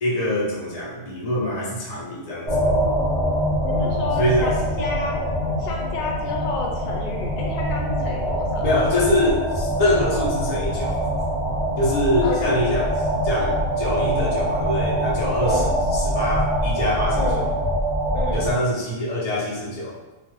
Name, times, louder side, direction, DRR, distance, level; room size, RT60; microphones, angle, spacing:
voice 1, 0.0-2.8 4.2-4.5 8.6-11.0 11.8-12.9 13.2-17.4 18.3-19.9, left 1 dB, 50° left, -6 dB, 0.4 m, -24 dB
sound 1, 2.5-18.5, equal, 30° right, 0.7 m, -24 dB
voice 2, 3.6-5.2 5.6-8.7 12.2-12.5 15.4-15.8 17.2-17.5 18.1-18.5, left 4 dB, 80° left, 0 dB, 1.1 m, -31 dB
2.4 x 2.4 x 3.0 m, 1.1 s
omnidirectional pair, 1.7 m